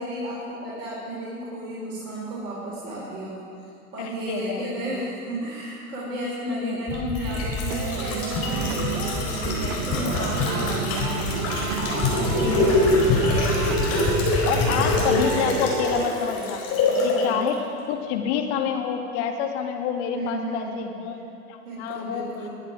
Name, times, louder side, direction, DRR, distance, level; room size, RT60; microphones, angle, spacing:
voice 1, 0.0-13.3 16.9-17.4 20.1-20.8 21.6-22.5, right 1 dB, 55° right, -7 dB, 3.9 m, -33 dB
voice 2, 4.0-5.0 6.5-6.8 12.4-12.7 14.5-16.6 17.0-17.6 17.9-21.2 21.5-22.3, left 8 dB, 45° left, 3 dB, 1.8 m, -28 dB
sound 1, 6.9-17.2 17.5-17.6, left 2 dB, 30° left, 4.4 m, -24 dB
sound 2, 7.3-16.1, right 12 dB, 40° right, 0.6 m, -33 dB
21.0 x 10.0 x 4.9 m, 2.5 s
figure-of-eight pair, 95°, 45 cm